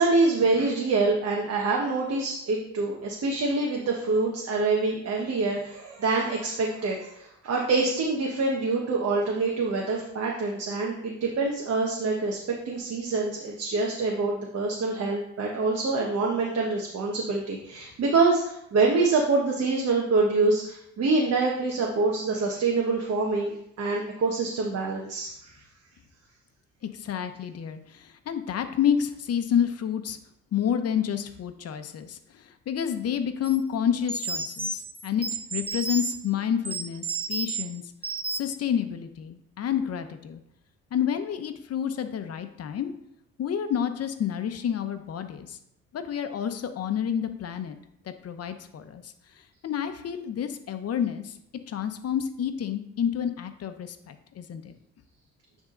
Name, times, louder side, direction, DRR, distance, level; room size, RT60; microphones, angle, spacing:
voice 1, 0.0-12.4 12.6-25.5, right 3 dB, 55° right, -1 dB, 1.2 m, -25 dB
voice 2, 26.8-30.2 30.5-35.3 35.5-37.8 38.3-40.4 40.9-42.9 43.4-45.6 45.9-47.8 48.1-51.4 51.7-54.7, left 8 dB, 55° left, 9 dB, 0.8 m, -29 dB
sound 1, 33.4-33.6 34.1-36.2 36.7-37.6 38.0-38.6, right 3 dB, 20° right, 0.9 m, -32 dB
9.6 x 3.7 x 3.8 m, 0.76 s
cardioid pair, 90°, 30 cm